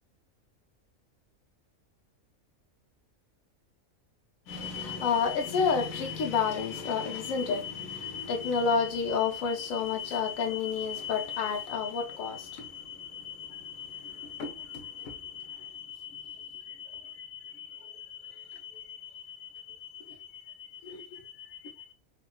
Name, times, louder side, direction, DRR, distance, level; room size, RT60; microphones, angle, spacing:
voice 1, 4.5-21.9, left 6 dB, 80° left, 1.1 m, -32 dB
3.6 x 2.1 x 2.2 m
omnidirectional pair, 1.4 m